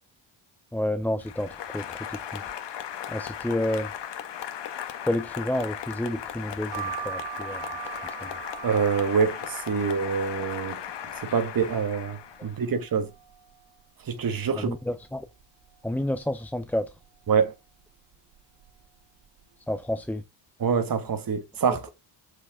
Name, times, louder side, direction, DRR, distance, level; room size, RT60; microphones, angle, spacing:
voice 1, 0.7-1.9 2.3-2.4 3.1-3.9 5.0-7.6 8.2-8.3 14.6-15.3 15.8-16.9 19.7-20.2, left 1 dB, 5° left, 0.5 m, -29 dB
Applause, 1.2-12.7, left 9 dB, 60° left, 1.5 m, -37 dB
sound 1, 6.7-12.4 12.8-13.6 14.0-14.1 14.3-15.4 15.9-16.3 17.0-17.4 18.1-18.4 18.6-18.8, right 10 dB, 70° right, 3.2 m, -41 dB
voice 2, 8.6-10.8 11.2-13.1 14.0-14.7 17.3-17.5 20.6-21.9, right 6 dB, 45° right, 1.8 m, -26 dB
7.8 x 6.1 x 3.7 m
cardioid pair, 110°, 47 cm